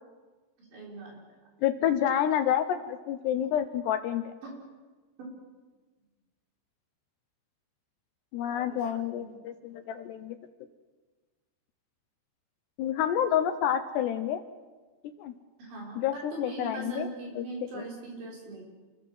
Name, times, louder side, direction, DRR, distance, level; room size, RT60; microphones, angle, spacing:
voice 1, 0.7-1.2 4.4-4.5 8.5-8.8 9.1-9.3 15.6-18.7, right 2 dB, 60° right, -2 dB, 8.6 m, -41 dB
voice 2, 1.6-4.3 8.3-10.4 12.8-14.4 15.2-15.3 16.0-17.1 17.4-17.5 17.7-17.8, left 10 dB, 75° left, 8 dB, 2.5 m, -28 dB
28.5 x 20.0 x 7.8 m, 1.3 s
omnidirectional pair, 5.9 m